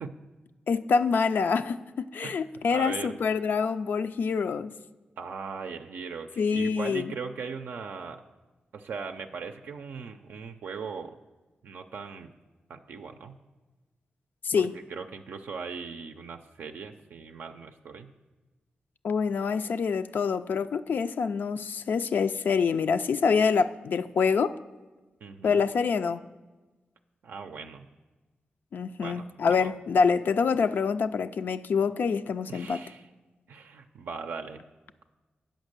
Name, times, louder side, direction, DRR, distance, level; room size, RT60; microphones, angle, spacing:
voice 1, 0.7-4.7 6.4-7.1 14.4-14.8 19.0-24.5 25.4-26.2 28.7-32.8, left 5 dB, 70° left, 9 dB, 0.3 m, -26 dB
voice 2, 2.7-3.2 5.2-8.2 8.7-11.2 11.6-12.3 12.7-13.3 14.6-18.1 25.2-25.6 27.2-27.9 29.0-29.7 32.5-33.1 33.5-34.6, right 5 dB, 85° right, 5 dB, 0.4 m, -39 dB
8.9 x 5.3 x 6.5 m, 1.2 s
cardioid pair, 75°, 3 cm